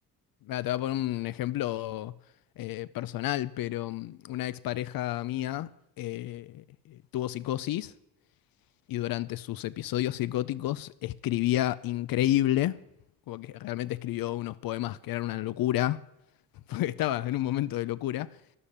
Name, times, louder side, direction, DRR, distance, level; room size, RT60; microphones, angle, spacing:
voice 1, 0.4-2.1 2.6-5.7 6.0-7.9 8.9-12.8 13.3-16.0 16.7-18.3, left 14 dB, 70° left, 0.6 m, -30 dB
12.5 x 11.5 x 8.6 m
cardioid pair, 155°, 36 cm